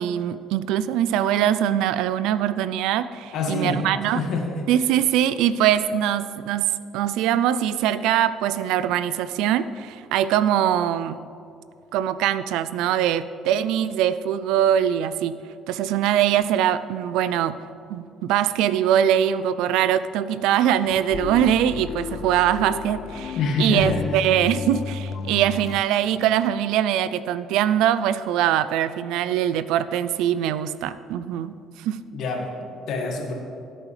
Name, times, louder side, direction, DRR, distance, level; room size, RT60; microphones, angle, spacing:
voice 1, 0.0-4.2 4.7-11.2 11.9-15.3 15.7-17.6 17.9-32.0, right 10 dB, 85° right, 14 dB, 0.4 m, -22 dB
voice 2, 3.3-3.8 4.1-4.6 23.4-24.0 32.1-32.5 32.8-33.3, left 3 dB, 65° left, 1 dB, 1.8 m, -26 dB
sound 1, 20.8-25.8, left 6 dB, 50° left, 0.4 m, -33 dB
16.0 x 8.6 x 3.3 m, 2.5 s
cardioid pair, 120°, 0 cm